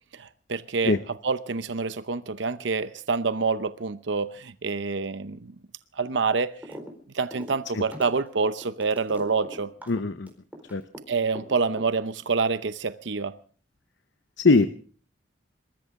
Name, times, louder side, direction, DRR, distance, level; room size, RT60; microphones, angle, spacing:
voice 1, 0.1-1.0 1.2-5.5 6.0-6.5 7.1-9.7 11.1-13.4, right 4 dB, 75° right, 0.8 m, -27 dB
sound 1, 6.6-6.9 7.2-11.0 11.4-12.2, equal, 10° right, 4.4 m, -41 dB
voice 2, 9.9-10.3 10.7-10.8 14.4-14.7, left 3 dB, 75° left, 0.8 m, -21 dB
26.5 x 14.0 x 3.7 m
head